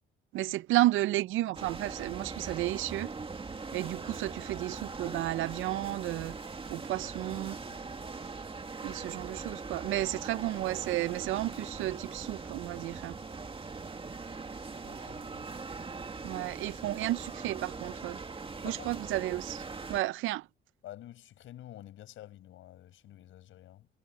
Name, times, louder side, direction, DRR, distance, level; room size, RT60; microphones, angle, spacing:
voice 1, 0.3-3.1 3.7-6.3 6.7-7.6 8.8-13.1 16.2-18.2 18.6-19.6 19.9-20.4, right 16 dB, 85° right, 0.5 m, -32 dB
sound 1, 1.5-20.0, right 4 dB, 25° right, 2.0 m, -41 dB
voice 2, 7.2-7.5 14.8-15.5 18.6-18.9 20.8-23.9, left 13 dB, 80° left, 6.2 m, -49 dB
cardioid pair, 90°, 20 cm